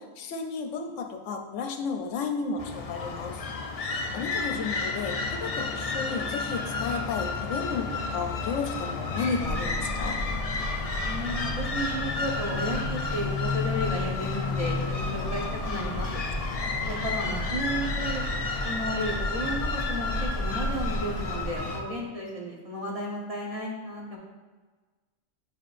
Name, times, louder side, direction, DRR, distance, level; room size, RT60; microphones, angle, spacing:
voice 1, 0.0-3.4 3.8-10.2, left 5 dB, 75° left, 5 dB, 0.9 m, -33 dB
sound 1, 2.6-21.8, left 3 dB, 60° left, 0.4 m, -31 dB
Clock, 9.4-21.6, equal, 10° right, 1.9 m, -35 dB
voice 2, 11.0-16.2 16.8-18.3 18.6-24.2, equal, 30° right, -3 dB, 0.8 m, -33 dB
7.4 x 5.1 x 2.5 m, 1.3 s
omnidirectional pair, 1.3 m